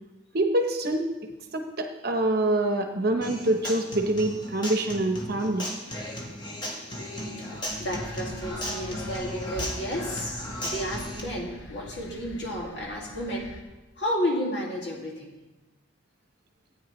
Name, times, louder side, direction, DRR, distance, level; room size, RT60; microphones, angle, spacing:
voice 1, 0.3-1.1 1.5-5.7, right 1 dB, 50° right, 5 dB, 0.9 m, -25 dB
Human voice / Acoustic guitar, 3.2-11.2, left 1 dB, 20° left, 1.4 m, -36 dB
voice 2, 7.4-10.3 10.6-13.5 14.0-15.3, equal, 60° left, -2 dB, 2.2 m, -32 dB
sound 1, 7.5-13.6, left 1 dB, 80° left, 1.0 m, -43 dB
14.5 x 8.9 x 3.1 m, 1.1 s
head